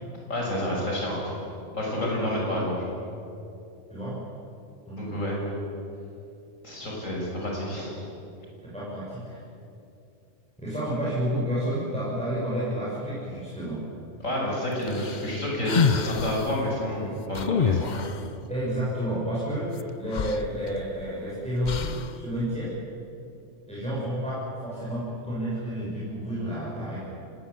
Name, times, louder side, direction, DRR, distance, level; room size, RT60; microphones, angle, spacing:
voice 1, 0.3-1.2 1.7-2.8 5.0-5.4 6.6-7.9 14.2-17.9, left 1 dB, 80° left, -3 dB, 6.9 m, -29 dB
voice 2, 4.9-5.2 8.6-9.4 10.6-13.8 18.5-22.8 23.7-27.0, equal, 5° left, -9 dB, 6.9 m, -30 dB
sound 1, 14.9-16.5 17.3-18.3 19.8-19.9 20.1-21.1 21.6-22.2, left 6 dB, 45° left, 0.7 m, -27 dB
25.5 x 19.5 x 8.5 m, 2.7 s
omnidirectional pair, 1.3 m